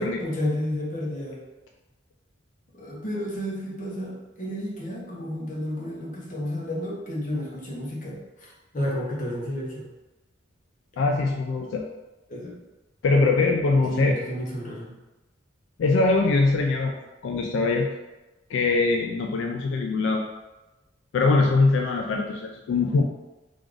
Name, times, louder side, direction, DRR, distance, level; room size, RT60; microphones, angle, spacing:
voice 1, 0.0-1.4 2.7-9.9 12.3-12.5 13.8-14.9, left 1 dB, 40° left, -4 dB, 0.8 m, -31 dB
voice 2, 11.0-11.8 13.0-14.2 15.8-16.9 17.2-17.9 18.5-20.2 21.1-23.0, left 3 dB, 75° left, 2 dB, 0.3 m, -22 dB
3.3 x 2.5 x 3.6 m, 1.1 s
head